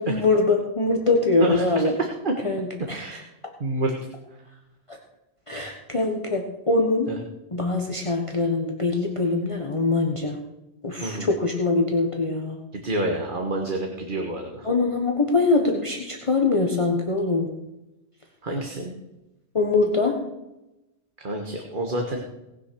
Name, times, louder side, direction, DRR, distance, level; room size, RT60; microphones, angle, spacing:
voice 1, 0.0-1.9 2.4-3.2 4.9-5.0 5.5-7.1 7.5-10.4 10.8-12.6 14.6-17.5 19.5-20.2, left 3 dB, 25° left, 1 dB, 1.3 m, -23 dB
voice 2, 2.0-2.3 2.9-3.2 3.6-3.9 7.1-7.2 11.0-11.3 12.7-14.7 18.4-18.9 21.2-22.2, right 2 dB, 45° right, 2 dB, 1.6 m, -28 dB
18.5 x 6.7 x 6.2 m, 0.95 s
omnidirectional pair, 1.2 m